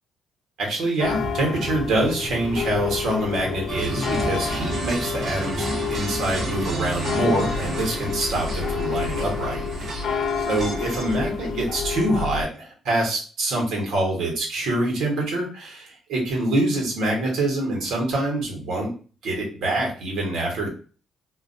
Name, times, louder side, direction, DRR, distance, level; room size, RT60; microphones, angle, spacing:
voice 1, 0.6-5.6 5.9-10.0 10.5-18.9 19.2-20.7, right 1 dB, 80° right, 0 dB, 1.1 m, -25 dB
sound 1, 1.0-12.4, left 5 dB, 65° left, 0.3 m, -29 dB
sound 2, 3.7-11.2, right 2 dB, 45° right, 0.6 m, -32 dB
2.4 x 2.3 x 2.5 m, 0.39 s
cardioid pair, 90°, 0 cm